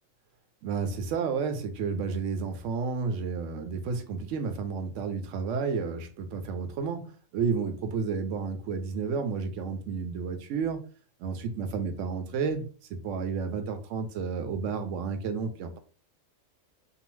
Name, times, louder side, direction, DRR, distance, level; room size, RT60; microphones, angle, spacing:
voice 1, 0.6-10.8 11.2-15.8, right 5 dB, 70° right, 0.9 m, -31 dB
2.7 x 2.0 x 3.0 m
omnidirectional pair, 1.4 m